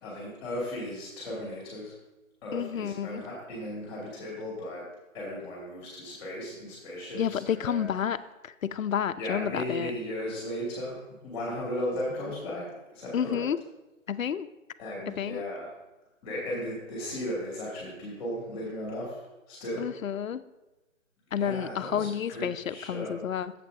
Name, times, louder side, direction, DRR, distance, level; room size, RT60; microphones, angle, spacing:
voice 1, 0.0-2.0 2.4-4.8 5.1-7.9 9.2-11.0 11.2-12.6 12.9-13.4 14.8-15.7 16.2-19.9 21.3-23.2, left 1 dB, 15° left, -5 dB, 2.3 m, -36 dB
voice 2, 2.5-3.2 7.1-8.2 8.6-9.9 13.1-13.6 14.1-14.5 15.1-15.4 19.8-20.4 21.3-23.5, left 8 dB, 75° left, 12 dB, 0.6 m, -30 dB
12.5 x 7.7 x 2.7 m, 1.0 s
hypercardioid pair, 165°, 41 cm